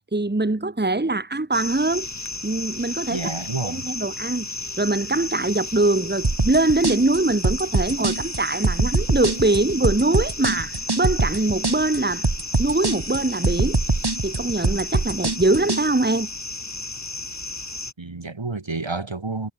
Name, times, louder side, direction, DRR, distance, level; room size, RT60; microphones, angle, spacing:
voice 1, 0.1-2.1 2.4-3.3 3.6-4.5 4.8-12.3 12.6-13.8 14.2-16.3, right 2 dB, 25° right, 1.7 m, -22 dB
sound 1, 1.5-17.9, left 2 dB, 40° left, 2.3 m, -34 dB
voice 2, 3.1-3.9 18.0-19.5, right 3 dB, 85° right, 6.9 m, -30 dB
sound 2, 6.2-15.8, right 3 dB, 60° right, 4.8 m, -23 dB
wide cardioid pair, 50°, 44 cm